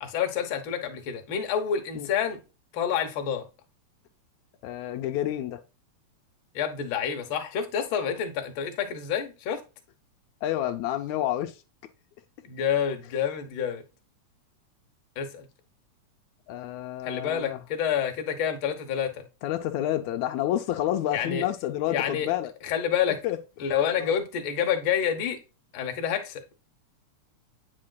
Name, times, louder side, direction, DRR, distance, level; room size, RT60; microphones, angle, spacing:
voice 1, 0.0-2.4 2.7-3.4 6.5-9.6 12.4-13.8 15.2-15.5 17.0-19.2 21.1-21.4 21.9-22.3 22.6-23.2 23.6-25.4 25.7-26.4, left 8 dB, 55° left, 1.6 m, -28 dB
voice 2, 4.6-5.6 10.4-11.6 16.5-17.6 19.4-22.5 23.2-23.4 24.0-24.1, left 12 dB, 80° left, 1.9 m, -29 dB
8.6 x 5.1 x 2.2 m
omnidirectional pair, 3.3 m